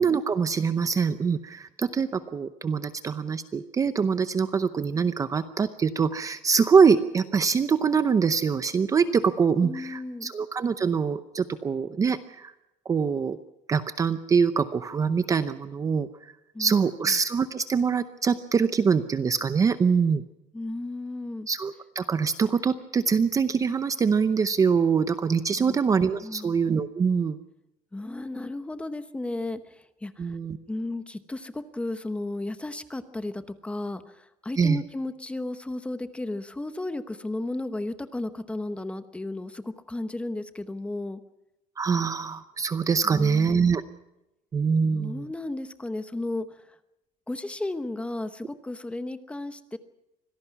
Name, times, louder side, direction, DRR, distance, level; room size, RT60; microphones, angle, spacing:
voice 1, 0.0-12.5 12.9-13.4 13.7-16.1 16.6-20.2 21.5-27.4 30.2-30.6 34.6-34.8 41.8-43.8 44.5-45.3, right 6 dB, 20° right, 12 dB, 0.7 m, -24 dB
voice 2, 9.6-10.3 16.5-17.1 20.5-21.5 25.6-25.8 26.2-26.6 27.9-30.4 30.7-41.2 43.0-43.7 44.8-46.8 47.3-49.8, left 2 dB, 10° left, 11 dB, 1.0 m, -34 dB
25.0 x 18.0 x 5.9 m, 0.91 s
cardioid pair, 155°, 15 cm